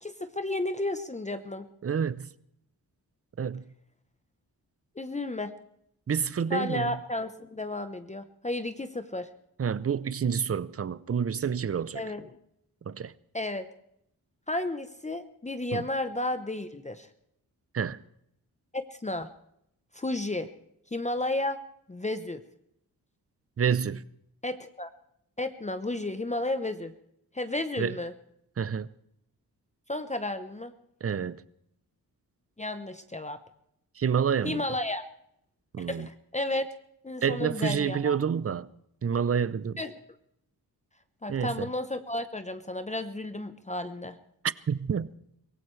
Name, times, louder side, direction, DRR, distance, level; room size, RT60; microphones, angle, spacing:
voice 1, 0.0-1.7 5.0-5.5 6.5-9.3 11.9-12.4 13.3-13.7 14.5-17.1 18.7-19.3 19.9-20.5 20.9-21.6 21.9-22.4 24.4-24.9 25.4-26.9 27.3-28.1 29.9-30.7 32.6-33.4 34.4-35.0 35.9-36.7 37.0-38.2 39.8-39.9 41.2-44.2, left 2 dB, 20° left, 0.9 m, -32 dB
voice 2, 1.8-2.3 3.4-3.6 6.1-7.0 9.6-12.0 12.9-13.1 15.7-15.8 17.7-18.0 23.6-24.0 27.8-27.9 28.6-28.9 31.0-31.4 34.0-34.6 35.7-36.1 37.2-38.7 39.0-39.8 41.3-41.7 44.4-45.1, right 7 dB, 40° right, 0.6 m, -28 dB
23.5 x 17.5 x 3.3 m
cardioid pair, 75°, 37 cm